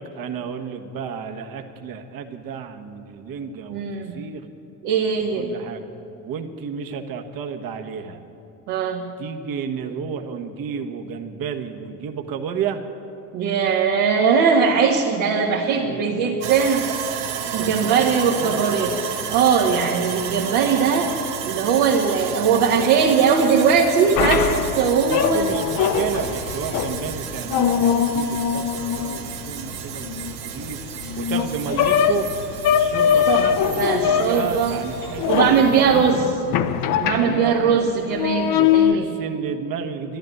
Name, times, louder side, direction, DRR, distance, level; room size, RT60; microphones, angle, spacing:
voice 1, 0.1-4.5 5.4-5.9 6.2-8.2 9.2-12.8 15.6-16.4 17.5-18.8 25.0-30.2 30.4-30.8 31.2-32.3 32.7-36.3 37.2-37.8 38.5-40.2, right 7 dB, 50° right, 4 dB, 1.5 m, -31 dB
voice 2, 3.7-4.2 4.8-5.5 8.7-9.0 13.3-16.8 17.5-21.1 21.4-25.5 33.3-33.5 33.8-34.8 35.3-36.2 37.0-39.1, right 6 dB, 65° right, -2 dB, 1.8 m, -20 dB
Sawing, 16.4-36.3, right 8 dB, 85° right, 1.4 m, -32 dB
sound 1, 24.2-37.7 38.1-38.9, left 8 dB, 45° left, 0.9 m, -22 dB
12.0 x 12.0 x 9.3 m, 2.9 s
hypercardioid pair, 75°, 45 cm